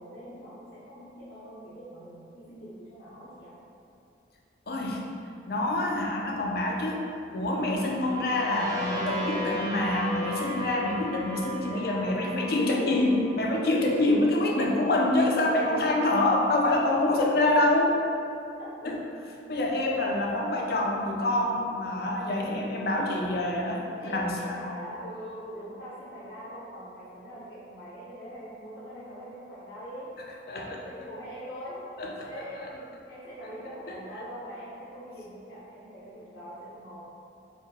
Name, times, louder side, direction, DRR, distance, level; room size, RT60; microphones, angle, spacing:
voice 1, 0.0-3.6 11.7-12.5 12.9-13.0 14.2-14.3 18.8-19.0 24.0-30.1 30.5-31.8 32.2-37.0, equal, 85° left, -11 dB, 0.9 m, -43 dB
voice 2, 4.7-5.0 5.5-7.0 7.3-17.9 18.8-19.0 19.5-24.5 30.5-30.8 32.0-32.3 32.6-32.7, left 1 dB, 55° left, -1 dB, 0.5 m, -26 dB
sound 1, 7.8-13.6, left 1 dB, 20° right, 0.7 m, -35 dB
4.1 x 2.7 x 3.6 m, 2.7 s
head